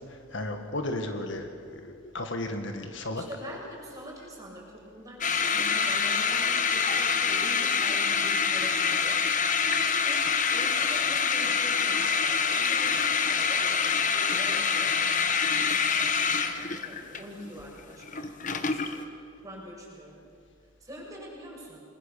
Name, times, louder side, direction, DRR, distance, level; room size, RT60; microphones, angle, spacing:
voice 1, 0.1-3.2 9.6-9.8, left 1 dB, 65° left, 5 dB, 1.9 m, -34 dB
voice 2, 3.2-10.2 10.5-19.0 19.4-20.2 20.8-21.8, equal, 15° right, -3 dB, 6.6 m, -44 dB
sound 1, 5.2-19.1, left 6 dB, 40° left, 1.3 m, -26 dB
28.5 x 21.0 x 7.0 m, 2.3 s
head